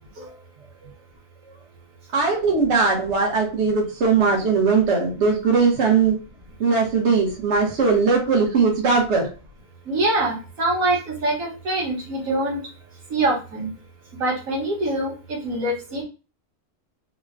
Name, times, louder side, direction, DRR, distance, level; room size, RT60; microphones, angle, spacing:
voice 1, 2.1-6.2 6.6-9.3, right 4 dB, 60° right, -1 dB, 1.3 m, -19 dB
voice 2, 9.9-12.6 13.1-13.7 14.2-16.0, right 1 dB, 90° right, -2 dB, 1.7 m, -24 dB
3.6 x 2.2 x 3.6 m, 0.32 s
omnidirectional pair, 1.4 m